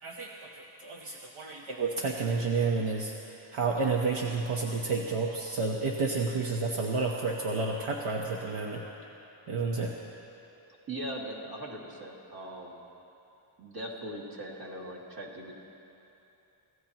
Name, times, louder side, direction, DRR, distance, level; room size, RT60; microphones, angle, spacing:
voice 1, 0.0-8.8 9.5-9.9, right 4 dB, 85° right, -1 dB, 1.2 m, -30 dB
voice 2, 10.9-12.8 13.6-15.5, right 1 dB, 50° right, -2 dB, 2.2 m, -40 dB
27.0 x 15.5 x 3.0 m, 3.0 s
wide cardioid pair, 155°, 49 cm